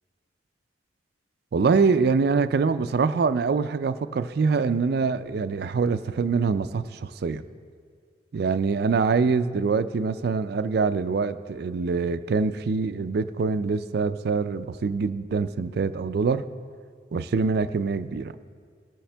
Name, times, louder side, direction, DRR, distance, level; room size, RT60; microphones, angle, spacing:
voice 1, 1.5-7.4 8.3-16.5 17.1-18.3, right 4 dB, 55° right, 13 dB, 0.4 m, -24 dB
17.5 x 8.5 x 3.3 m, 2.1 s
head